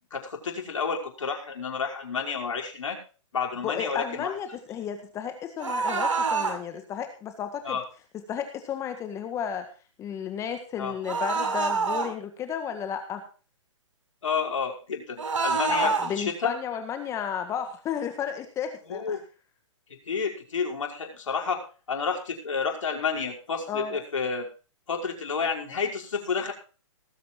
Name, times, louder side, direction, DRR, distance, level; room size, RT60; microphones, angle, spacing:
voice 1, 0.1-3.0 3.3-4.3 7.6-7.8 10.8-10.9 14.2-16.5 18.9-19.2 20.1-21.6 21.9-24.5 24.9-26.5, left 5 dB, 80° left, 0 dB, 5.4 m, -30 dB
voice 2, 3.6-7.8 8.1-9.7 10.0-13.2 15.7-19.2 23.7-23.9, left 8 dB, 20° left, 7 dB, 1.7 m, -33 dB
sound 1, 5.6-6.6 11.0-12.1 15.2-16.1, right 5 dB, 85° right, 6.6 m, -26 dB
18.5 x 8.5 x 4.6 m, 0.36 s
hypercardioid pair, 150°, 16 cm